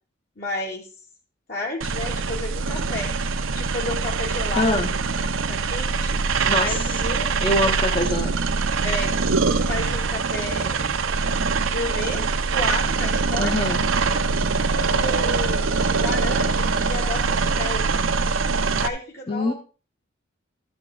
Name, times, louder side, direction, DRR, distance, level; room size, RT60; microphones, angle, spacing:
voice 1, 0.4-0.9 1.5-3.1 3.5-4.8 5.1-7.7 8.8-9.1 9.6-10.9 11.6-13.6 14.7-17.9 18.8-19.5, left 2 dB, 55° left, -3 dB, 2.2 m, -32 dB
sound 1, 1.8-18.9, right 4 dB, 85° right, 0.8 m, -23 dB
voice 2, 4.5-4.9 6.4-7.0 7.4-8.3 13.4-13.8 19.3-19.5, left 2 dB, 25° left, 2 dB, 0.9 m, -24 dB
13.0 x 6.6 x 4.9 m, 0.35 s
head